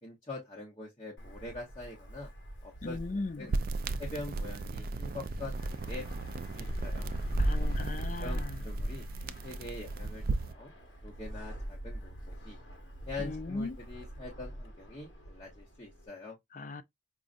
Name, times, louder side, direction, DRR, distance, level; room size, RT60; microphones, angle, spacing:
voice 1, 0.0-2.3 2.6-3.5 4.0-7.1 8.2-10.7 11.0-12.6 13.1-16.4, left 2 dB, 25° left, 0.8 m, -44 dB
Wind, 1.2-16.1, right 1 dB, 80° left, 1.2 m, -39 dB
voice 2, 2.8-3.5 7.4-8.5 13.2-13.8 16.5-16.8, left 3 dB, 45° left, 0.4 m, -38 dB
sound 1, 3.5-10.5, right 3 dB, 50° right, 0.3 m, -37 dB
5.1 x 2.3 x 2.5 m
head